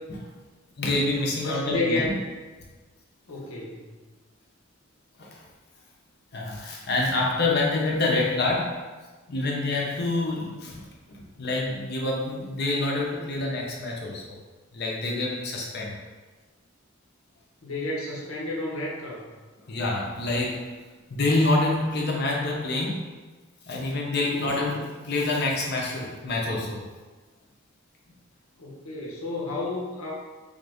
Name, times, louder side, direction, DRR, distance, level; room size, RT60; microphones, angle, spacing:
voice 1, 0.8-2.1 5.2-5.4 6.3-8.8 9.3-10.8 11.1-14.2 14.7-15.9 19.7-20.6 21.1-23.0 23.7-26.8, left 2 dB, 50° left, -2 dB, 0.7 m, -27 dB
voice 2, 1.4-2.2 3.3-3.9 17.6-19.3 24.2-24.6 28.6-30.1, left 2 dB, 90° left, -4 dB, 1.0 m, -31 dB
3.6 x 2.6 x 3.4 m, 1.3 s
head